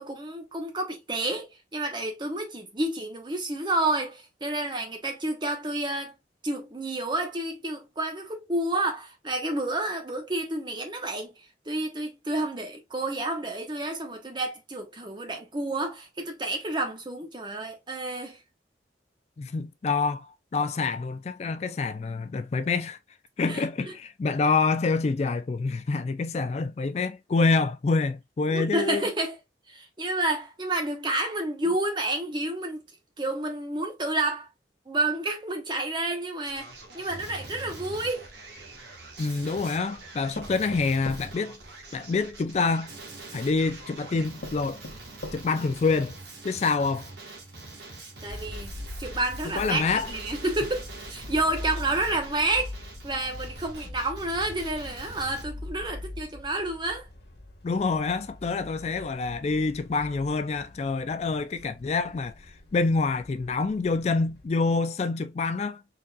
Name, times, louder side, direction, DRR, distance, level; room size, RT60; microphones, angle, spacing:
voice 1, 0.0-6.1 6.4-11.3 11.7-18.4 23.5-23.9 28.5-29.4 29.7-32.8 33.2-34.5 34.9-38.3 48.2-48.7 49.0-52.8 53.0-57.1, right 2 dB, 25° right, 1.0 m, -30 dB
voice 2, 19.4-23.0 23.4-29.1 39.2-41.6 41.9-42.9 43.3-44.8 45.3-46.1 46.4-47.1 49.5-50.1 57.6-65.8, left 4 dB, 40° left, 0.3 m, -27 dB
Male speech man speaking, 36.4-55.4, right 3 dB, 75° right, 1.5 m, -44 dB
sound 1, 38.7-39.6 40.3-42.3 43.3-43.4 44.0-44.1 44.4-45.8 46.2-46.3 46.7-46.8, left 2 dB, 80° left, 0.9 m, -42 dB
sound 2, 48.3-64.5, left 1 dB, 60° left, 1.3 m, -42 dB
4.0 x 3.9 x 2.3 m
head